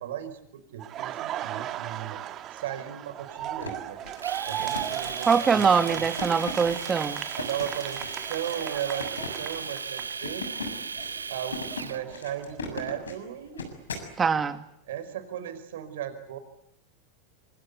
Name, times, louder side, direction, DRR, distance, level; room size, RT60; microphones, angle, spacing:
voice 1, 0.0-2.2 2.5-4.0 4.5-6.0 7.4-10.5 11.3-13.6 14.9-16.4, right 10 dB, 70° right, 10 dB, 5.0 m, -36 dB
Laughter, 0.8-10.6 11.0-13.0, right 12 dB, 40° right, 1.8 m, -37 dB
sound 1, 3.4-14.1, left 4 dB, 85° left, 6.9 m, -39 dB
Domestic sounds home sounds, 4.2-12.0, right 5 dB, 90° right, 1.3 m, -36 dB
voice 2, 5.2-7.2 14.2-14.6, right 6 dB, 25° right, 9 dB, 2.3 m, -23 dB
26.5 x 26.0 x 8.3 m, 0.73 s
hypercardioid pair, 90°, 0 cm